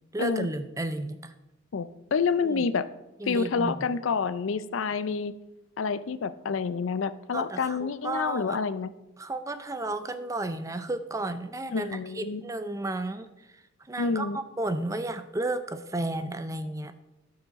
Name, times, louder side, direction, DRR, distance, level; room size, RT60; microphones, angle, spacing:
voice 1, 0.1-1.3 2.4-2.6 3.2-3.8 7.3-8.6 9.2-13.6 13.9-16.9, right 2 dB, 15° right, 10 dB, 0.5 m, -33 dB
voice 2, 1.7-2.9 3.3-5.3 5.8-8.9 11.7-12.4 14.0-14.4, left 5 dB, 80° left, 15 dB, 0.5 m, -28 dB
13.0 x 5.8 x 4.1 m, 0.94 s
head